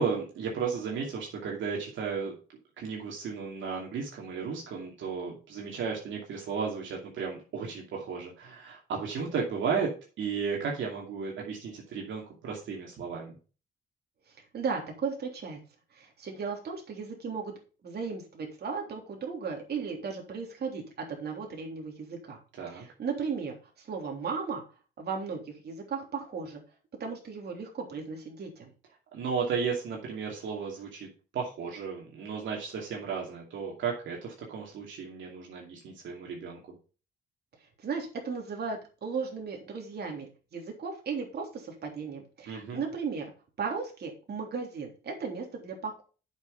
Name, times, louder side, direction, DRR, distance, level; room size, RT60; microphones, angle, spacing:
voice 1, 0.0-2.3 2.8-9.9 10.2-13.4 22.6-22.9 29.1-31.1 31.3-36.8 42.5-42.8, right 5 dB, 70° right, -1 dB, 2.6 m, -34 dB
voice 2, 14.5-15.6 15.9-17.5 17.8-22.4 22.7-24.6 25.0-26.6 27.0-28.7 37.8-43.3 43.6-45.9, right 5 dB, 55° right, 1 dB, 3.3 m, -36 dB
8.0 x 6.4 x 5.1 m, 0.36 s
cardioid pair, 90°, 20 cm